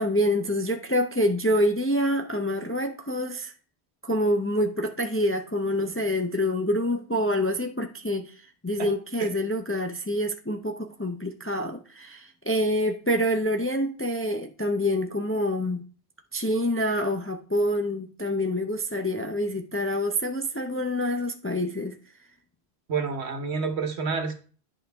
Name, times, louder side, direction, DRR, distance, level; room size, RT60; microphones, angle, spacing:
voice 1, 0.0-3.5 4.0-8.4 8.6-15.8 16.3-21.9, equal, 20° left, 5 dB, 0.4 m, -26 dB
voice 2, 22.9-24.3, right 5 dB, 80° right, 6 dB, 1.4 m, -28 dB
10.5 x 5.0 x 3.4 m, 0.39 s
omnidirectional pair, 1.1 m